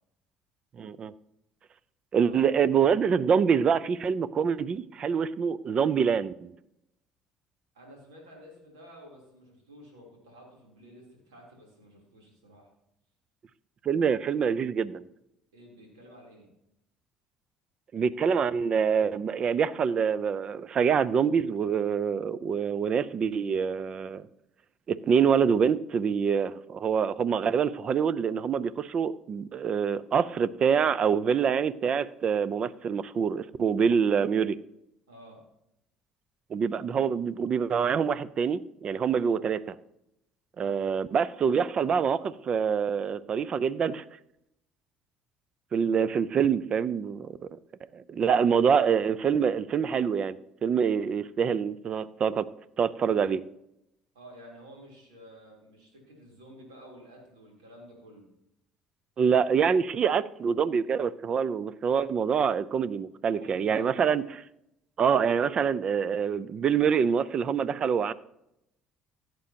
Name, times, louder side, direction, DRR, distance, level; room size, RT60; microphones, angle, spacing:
voice 1, 0.8-1.1 2.1-6.5 13.8-15.0 17.9-24.3 24.9-34.6 36.5-39.7 40.6-44.0 45.7-47.6 47.9-52.5 52.8-53.4 59.2-64.4 65.0-68.1, right 7 dB, 45° right, 19 dB, 0.5 m, -26 dB
voice 2, 2.1-2.5 7.7-12.7 15.5-16.5 35.1-35.4 39.1-39.4 40.6-40.8 54.1-58.3 63.4-63.9, equal, 85° right, -1 dB, 3.3 m, -51 dB
16.0 x 7.7 x 2.8 m, 0.81 s
hypercardioid pair, 60°, 2 cm